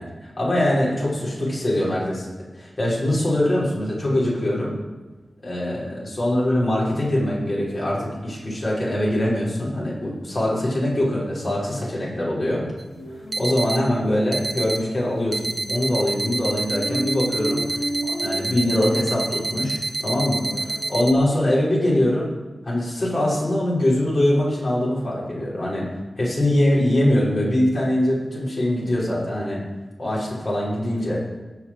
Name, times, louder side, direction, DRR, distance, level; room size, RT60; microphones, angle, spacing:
voice 1, 0.0-2.3 2.5-4.8 5.4-12.7 13.4-17.8 18.2-22.3 22.6-25.8 26.2-29.6 30.0-31.2, left 1 dB, 55° left, -6 dB, 5.7 m, -23 dB
sound 1, 5.6-5.7 6.1-6.2 6.5-21.0, equal, 85° left, 2.3 m, -36 dB
sound 2, 12.8-12.9 13.3-13.8 14.3-14.8 15.3-21.1, right 3 dB, 60° right, 1.3 m, -28 dB
17.5 x 6.1 x 8.0 m, 1.2 s
wide cardioid pair, 85°, 0 cm